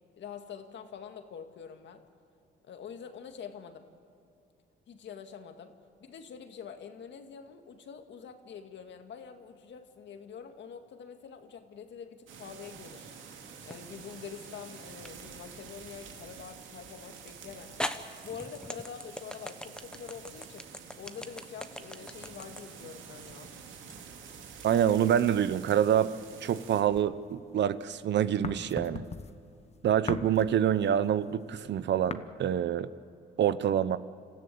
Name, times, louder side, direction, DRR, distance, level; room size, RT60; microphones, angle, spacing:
voice 1, 0.2-2.0 2.6-3.9 4.9-5.7 6.0-13.1 13.7-17.9 18.2-20.7 20.9-23.5, left 7 dB, 65° left, 6 dB, 2.0 m, -45 dB
sound 1, 12.3-26.8, right 6 dB, 85° right, 2.4 m, -48 dB
sound 2, 13.7-14.3 15.0-15.2 17.0-17.1 17.8-24.0, left 1 dB, 5° left, 1.2 m, -40 dB
voice 2, 24.6-26.1 26.4-29.0 29.8-32.9 33.4-34.0, right 9 dB, 65° right, 15 dB, 0.8 m, -26 dB
sound 3, 26.9-27.8 28.1-32.1, left 5 dB, 35° left, 1.1 m, -39 dB
27.0 x 14.5 x 8.6 m, 2.7 s
cardioid pair, 90°, 20 cm